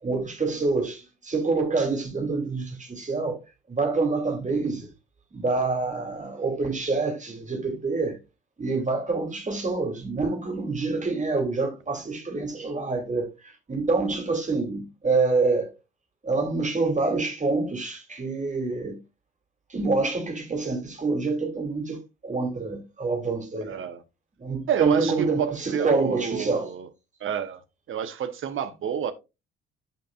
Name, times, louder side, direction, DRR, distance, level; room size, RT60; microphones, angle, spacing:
voice 1, 0.0-3.4 3.7-4.9 5.3-8.2 8.6-13.3 13.7-15.7 16.2-19.0 19.7-23.8 24.4-26.7, right 3 dB, 25° right, 3.0 m, -26 dB
voice 2, 23.6-24.0 24.7-26.9 27.2-27.6 27.9-29.1, right 8 dB, 40° right, 1.1 m, -29 dB
13.0 x 5.2 x 2.4 m
figure-of-eight pair, 50°, 30 cm